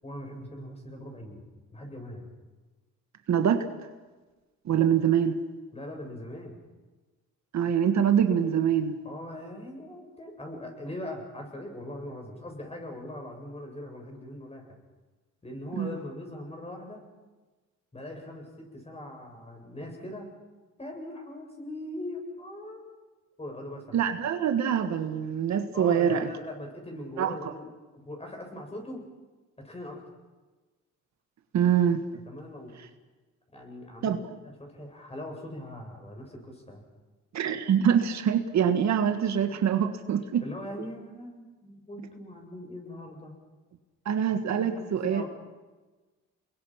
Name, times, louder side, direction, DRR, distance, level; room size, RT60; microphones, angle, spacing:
voice 1, 0.0-1.4 1.7-2.3 4.7-4.8 5.7-6.6 9.0-14.8 15.4-17.1 17.9-20.3 20.8-22.9 23.4-24.0 25.7-29.0 29.6-30.0 32.3-32.8 33.5-34.2 34.4-36.8 40.4-43.3 44.6-45.3, left 1 dB, 20° left, 1 dB, 7.5 m, -41 dB
voice 2, 3.3-3.7 4.6-5.4 7.5-9.0 15.8-15.9 23.9-26.3 27.2-27.3 31.5-32.0 34.0-34.2 37.3-40.4 44.0-45.2, right 8 dB, 65° right, 8 dB, 1.7 m, -24 dB
29.0 x 22.0 x 5.9 m, 1.2 s
cardioid pair, 90°, 30 cm